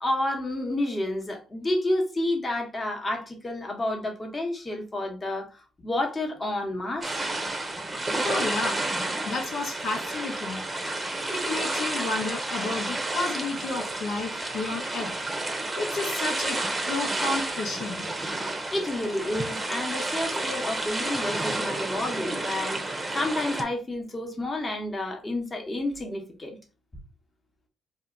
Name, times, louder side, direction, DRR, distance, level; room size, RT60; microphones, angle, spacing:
voice 1, 0.0-7.2 10.7-11.3 18.7-26.6, left 1 dB, 25° left, 1.0 m, -30 dB
sound 1, 7.0-23.6, right 2 dB, 20° right, 0.7 m, -31 dB
voice 2, 8.2-8.8 9.3-10.6 11.3-15.1 15.8-16.6 16.8-18.0, left 3 dB, 75° left, 0.9 m, -31 dB
2.7 x 2.4 x 3.6 m
cardioid pair, 90°, 0 cm